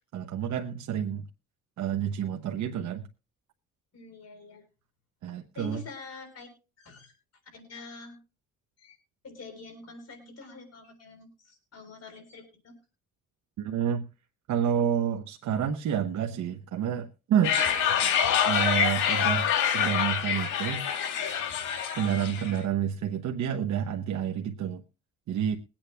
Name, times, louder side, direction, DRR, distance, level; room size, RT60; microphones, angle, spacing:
voice 1, 0.1-1.2 1.8-3.0 5.2-5.8 13.6-14.0 14.5-17.6 18.4-20.9 21.9-24.8 25.3-25.6, right 9 dB, 70° right, 4 dB, 0.9 m, -29 dB
voice 2, 3.9-4.6 5.5-6.5 6.8-7.1 7.5-8.2 8.8-9.0 9.2-12.7, left 3 dB, 55° left, 4 dB, 3.9 m, -46 dB
sound 1, 17.4-22.6, left 8 dB, 85° left, 2.3 m, -26 dB
22.0 x 8.8 x 2.3 m, 0.34 s
cardioid pair, 90°, 30 cm